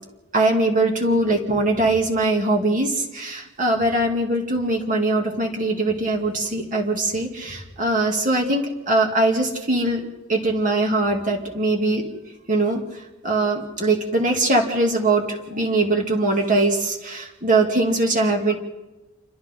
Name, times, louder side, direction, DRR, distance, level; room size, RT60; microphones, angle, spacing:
voice 1, 0.3-12.0 12.5-18.6, right 2 dB, 35° right, 1 dB, 2.7 m, -21 dB
29.0 x 25.0 x 3.9 m, 1.1 s
head